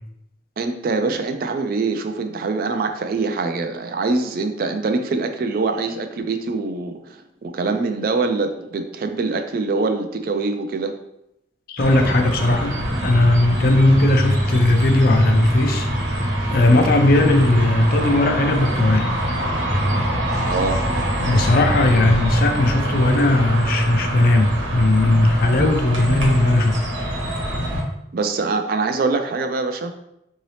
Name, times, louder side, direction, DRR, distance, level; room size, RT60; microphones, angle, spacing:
voice 1, 0.6-10.9 20.5-20.8 28.1-29.9, right 3 dB, 50° right, 6 dB, 0.3 m, -24 dB
voice 2, 11.7-19.2 21.2-26.8, left 2 dB, 50° left, 5 dB, 0.4 m, -18 dB
sound 1, 11.8-27.8, equal, 75° right, 1.1 m, -24 dB
3.8 x 2.7 x 3.2 m, 0.82 s
head